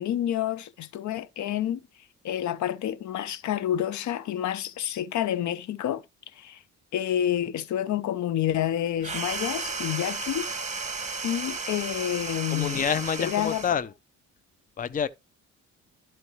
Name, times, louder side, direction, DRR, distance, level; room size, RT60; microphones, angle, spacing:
voice 1, 0.0-1.8 2.2-6.0 6.4-6.6 6.9-10.5 10.7-10.9 11.2-12.8 13.2-13.6, left 11 dB, 70° left, 0.7 m, -29 dB
sound 1, 9.0-13.8, right 4 dB, 25° right, 1.4 m, -34 dB
voice 2, 12.5-13.9 14.8-15.1, left 8 dB, 30° left, 0.5 m, -27 dB
12.5 x 4.4 x 3.1 m
cardioid pair, 90°, 30 cm